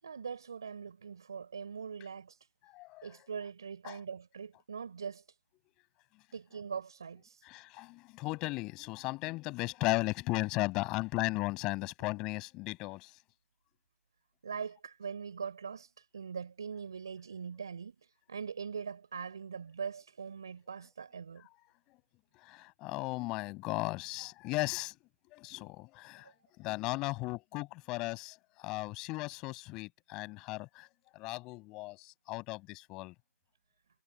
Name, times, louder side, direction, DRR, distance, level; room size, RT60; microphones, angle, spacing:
voice 1, 0.0-2.4 3.0-5.2 6.3-7.4 14.4-17.9 18.3-21.5 26.2-26.4, right 6 dB, 15° right, 5.6 m, -42 dB
voice 2, 2.7-3.2 3.8-4.0 7.4-13.2 22.3-25.0 25.3-30.9 31.1-33.1, left 22 dB, 5° left, 7.1 m, -36 dB
figure-of-eight pair, 175°, 8 cm